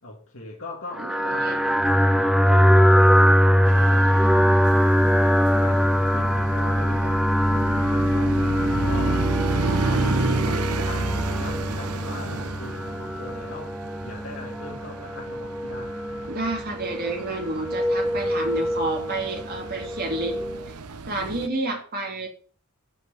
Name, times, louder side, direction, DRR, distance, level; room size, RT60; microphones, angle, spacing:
voice 1, 0.0-5.2 5.6-9.2 9.6-13.8 14.0-15.9, left 2 dB, 60° left, -2 dB, 2.4 m, -40 dB
sound 1, 1.0-20.7, equal, ahead, 0.5 m, -22 dB
voice 2, 1.0-1.6 2.0-2.1 9.7-10.0 16.3-20.4 21.1-22.3, right 2 dB, 45° right, 1 dB, 2.9 m, -30 dB
sound 2, 3.6-21.5, right 4 dB, 90° right, 0.8 m, -32 dB
8.0 x 6.0 x 7.6 m, 0.41 s
head